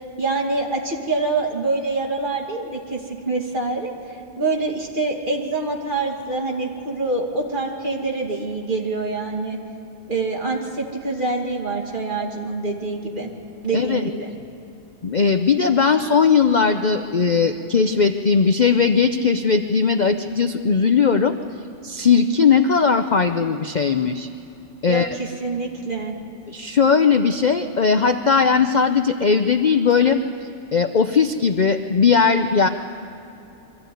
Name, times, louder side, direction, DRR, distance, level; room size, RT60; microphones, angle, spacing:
voice 1, 0.2-9.6 10.1-13.3 13.6-14.3 24.8-26.1, right 3 dB, 35° right, 0 dB, 2.5 m, -25 dB
voice 2, 15.0-21.3 21.8-24.3 24.8-25.2 26.5-30.2 30.7-32.7, left 5 dB, 45° left, 7 dB, 0.6 m, -18 dB
23.5 x 14.5 x 9.2 m, 2.9 s
omnidirectional pair, 1.5 m